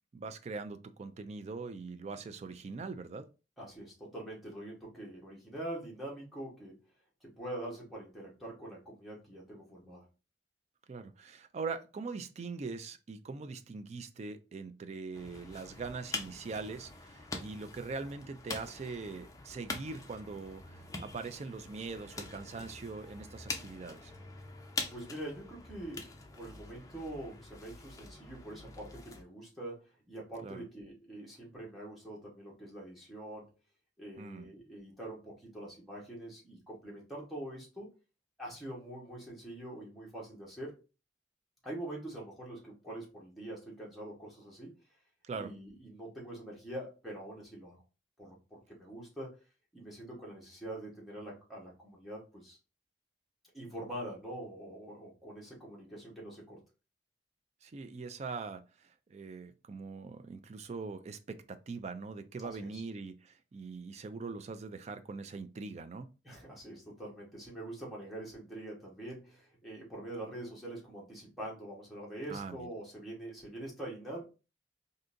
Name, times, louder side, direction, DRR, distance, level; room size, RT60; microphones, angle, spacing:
voice 1, 0.1-3.3 10.9-24.1 30.4-30.7 34.2-34.5 45.2-45.5 57.6-66.1 72.3-72.7, right 4 dB, 40° right, 0.3 m, -42 dB
voice 2, 3.6-6.8 7.2-10.0 24.9-26.1 26.3-33.5 34.0-37.9 38.4-40.8 41.6-44.7 45.3-47.8 48.2-49.4 49.7-52.6 53.5-56.6 62.4-62.8 66.2-74.2, right 1 dB, ahead, 1.1 m, -44 dB
sound 1, 15.1-29.2, left 3 dB, 20° left, 0.5 m, -45 dB
3.8 x 2.6 x 2.5 m
head